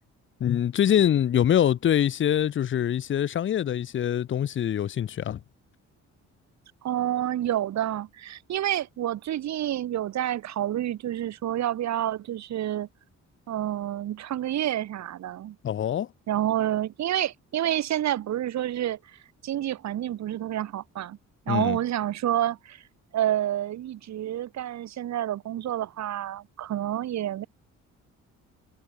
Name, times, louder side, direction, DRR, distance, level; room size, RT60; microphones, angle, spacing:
voice 1, 0.4-5.4 15.6-16.1 21.5-21.8, left 10 dB, 40° left, 0.6 m, -24 dB
voice 2, 6.8-12.9 13.5-15.6 16.3-21.2 21.5-22.8 23.1-27.5, right 12 dB, 65° right, 1.1 m, -29 dB
cardioid pair, 90°, 30 cm